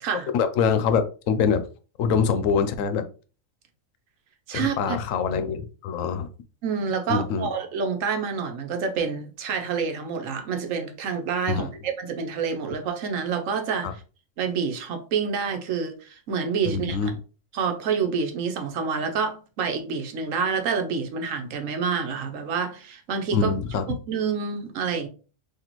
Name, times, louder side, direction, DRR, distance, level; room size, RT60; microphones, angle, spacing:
voice 1, 0.3-1.6 2.0-3.0 4.5-6.3 7.1-7.5 11.5-11.7 13.8-13.9 16.6-17.1 23.3-23.8, left 6 dB, 85° left, 1.0 m, -24 dB
voice 2, 4.5-5.0 6.6-13.9 14.4-17.1 17.5-23.5 24.1-25.1, right 6 dB, 90° right, 1.1 m, -28 dB
4.1 x 2.8 x 2.9 m
omnidirectional pair, 1.3 m